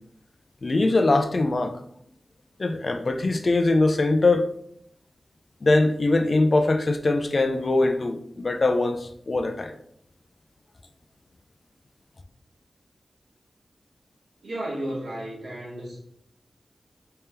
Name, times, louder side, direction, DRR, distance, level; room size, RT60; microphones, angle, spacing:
voice 1, 0.6-1.8 2.6-4.5 5.6-9.7, left 2 dB, 45° left, 0.3 m, -22 dB
voice 2, 14.4-16.0, right 1 dB, 85° right, 1.3 m, -33 dB
3.4 x 3.3 x 2.8 m
wide cardioid pair, 120°, 0 cm